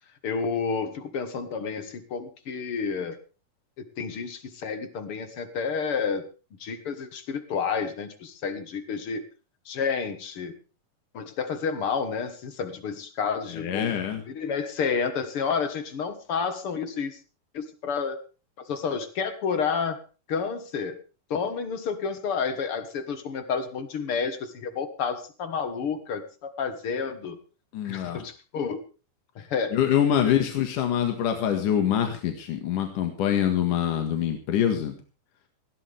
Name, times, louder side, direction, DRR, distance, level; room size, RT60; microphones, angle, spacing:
voice 1, 0.2-3.2 4.0-6.3 6.6-9.3 9.7-10.5 11.1-13.9 14.3-17.2 17.5-18.2 18.6-20.0 20.3-21.0 21.3-27.4 27.8-28.8 29.4-29.8 30.2-30.4, left 6 dB, 50° left, 10 dB, 2.0 m, -30 dB
voice 2, 13.5-14.2 27.7-28.2 29.7-34.9, left 9 dB, 75° left, 5 dB, 3.3 m, -25 dB
19.5 x 16.0 x 3.5 m, 0.35 s
omnidirectional pair, 3.8 m